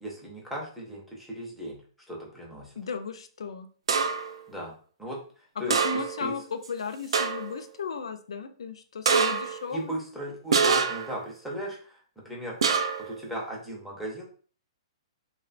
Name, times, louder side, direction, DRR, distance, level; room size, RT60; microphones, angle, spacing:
voice 1, 0.0-1.8 2.1-2.7 4.5-4.7 5.0-6.3 9.7-12.6 13.1-14.2, equal, ahead, -3 dB, 0.4 m, -36 dB
voice 2, 2.8-3.7 5.7-9.9, left 5 dB, 85° left, 8 dB, 0.3 m, -35 dB
sound 1, 3.9-4.4 5.7-6.3 6.6-6.7 7.1-7.6 9.1-9.6 10.5-11.2 12.6-13.1, right 5 dB, 75° right, 0.3 m, -25 dB
2.7 x 2.1 x 2.4 m, 0.43 s
hypercardioid pair, 180°, 3 cm